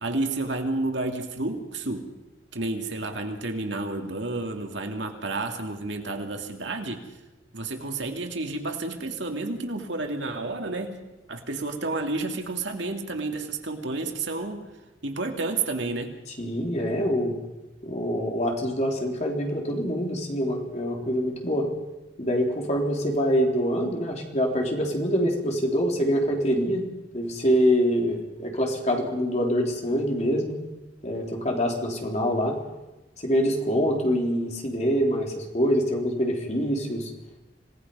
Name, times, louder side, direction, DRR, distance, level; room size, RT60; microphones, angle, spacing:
voice 1, 0.0-2.1 2.5-7.1 7.5-14.6 15.0-16.1, right 2 dB, 65° right, 3 dB, 2.5 m, -30 dB
voice 2, 16.4-17.4 17.8-21.7 22.2-26.8 27.1-30.6 31.0-32.6 33.2-37.1, equal, 35° left, 1 dB, 3.7 m, -25 dB
27.0 x 18.5 x 5.6 m, 1.0 s
head